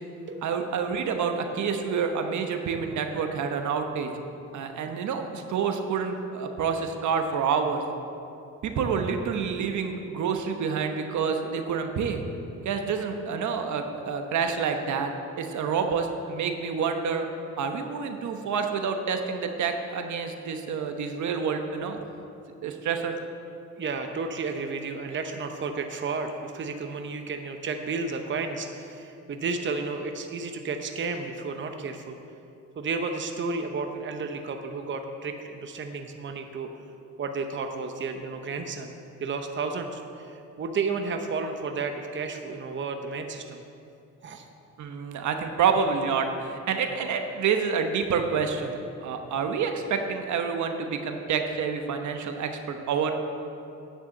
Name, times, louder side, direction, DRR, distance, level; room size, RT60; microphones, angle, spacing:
voice 1, 0.4-4.1 4.5-7.8 8.6-12.2 12.6-15.1 15.4-17.3 17.6-22.0 22.6-23.2 44.8-53.2, right 6 dB, 70° right, 5 dB, 1.1 m, -28 dB
voice 2, 23.8-32.2 32.8-36.7 37.2-38.9 39.2-43.6 44.2-44.5, right 4 dB, 40° right, 5 dB, 0.8 m, -32 dB
9.4 x 6.7 x 7.9 m, 2.7 s
cardioid pair, 90°, 30 cm